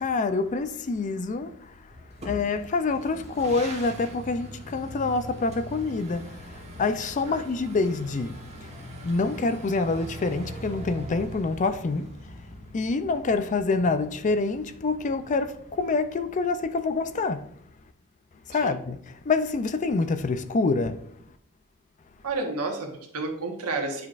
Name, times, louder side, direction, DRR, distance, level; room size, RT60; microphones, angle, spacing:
voice 1, 0.0-1.5 2.2-8.4 9.0-12.1 12.7-17.5 18.5-21.0, left 3 dB, 35° left, 0.4 m, -26 dB
sound 1, 1.9-17.7, equal, 30° right, 1.2 m, -42 dB
voice 2, 22.2-24.1, right 3 dB, 80° right, 1.4 m, -31 dB
9.4 x 5.1 x 2.5 m
head